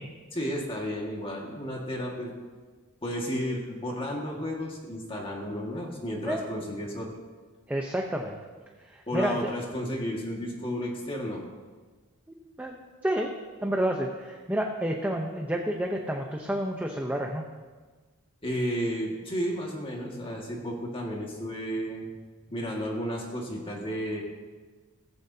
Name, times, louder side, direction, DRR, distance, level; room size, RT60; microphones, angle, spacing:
voice 1, 0.3-2.3 3.0-7.1 9.1-11.4 18.4-22.1 22.5-24.2, equal, 25° left, -1 dB, 1.9 m, -32 dB
voice 2, 7.7-8.4 8.9-9.4 12.3-13.3 13.6-17.4, right 1 dB, 5° right, 1 dB, 0.8 m, -30 dB
16.5 x 15.0 x 2.8 m, 1.4 s
head